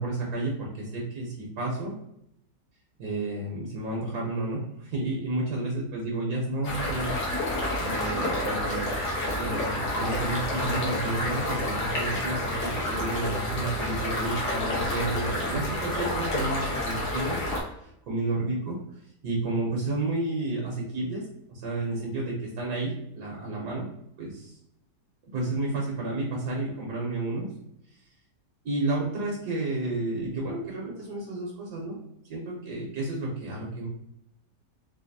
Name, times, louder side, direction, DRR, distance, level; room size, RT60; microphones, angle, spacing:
voice 1, 0.0-1.9 3.0-7.1 7.8-8.9 9.2-17.4 17.8-18.8 19.2-21.2 21.5-23.9 24.2-24.6 25.3-27.5 28.6-32.0 32.2-33.9, right 2 dB, 70° right, -2 dB, 1.3 m, -31 dB
sound 1, 6.6-17.6, left 1 dB, 70° left, 1.6 m, -29 dB
4.0 x 2.6 x 2.6 m, 0.77 s
omnidirectional pair, 1.8 m